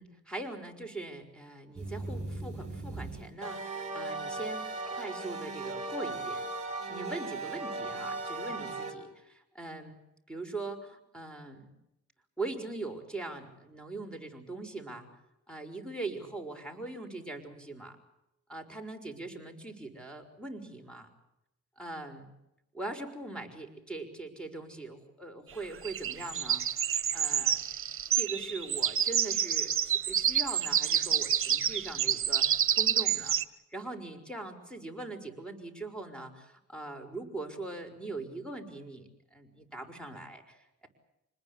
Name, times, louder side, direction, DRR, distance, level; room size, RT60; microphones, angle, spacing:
voice 1, 0.0-4.6 4.9-6.4 6.9-10.0 10.3-11.7 12.4-15.1 15.5-18.0 18.5-21.1 21.8-22.3 22.7-27.6 28.1-33.4 33.7-40.9, right 2 dB, 5° left, 8 dB, 5.9 m, -41 dB
sound 1, 1.8-8.9, right 2 dB, 20° right, 7.8 m, -37 dB
sound 2, 25.8-33.4, right 9 dB, 45° right, 1.5 m, -28 dB
26.5 x 20.5 x 8.5 m, 0.87 s
cardioid pair, 90°, 30 cm